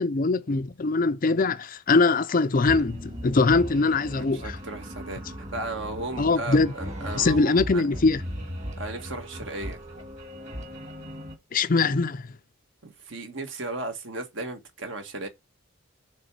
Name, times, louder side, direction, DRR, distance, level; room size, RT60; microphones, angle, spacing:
voice 1, 0.0-4.6 6.2-6.7 7.1-8.2 11.5-12.3, left 3 dB, 40° left, 0.5 m, -22 dB
sound 1, 2.7-11.4, equal, 35° right, 2.2 m, -37 dB
voice 2, 4.1-5.2 5.5-7.8 8.8-9.8 12.8-15.3, right 2 dB, 60° right, 1.7 m, -35 dB
6.5 x 3.7 x 6.0 m
head